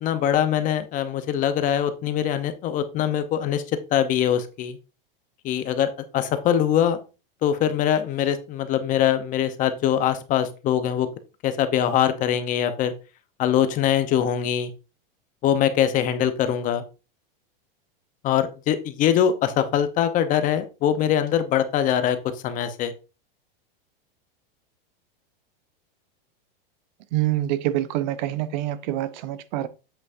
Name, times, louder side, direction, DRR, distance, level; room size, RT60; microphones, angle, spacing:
voice 1, 0.0-3.6 3.9-4.8 5.4-7.0 7.4-11.1 11.4-12.9 13.4-14.7 15.4-16.8 18.2-22.2 22.4-22.9, left 10 dB, 25° left, 0.7 m, -23 dB
voice 2, 27.1-29.7, right 14 dB, 50° right, 0.6 m, -26 dB
8.2 x 6.2 x 2.6 m
supercardioid pair, 150°, 29 cm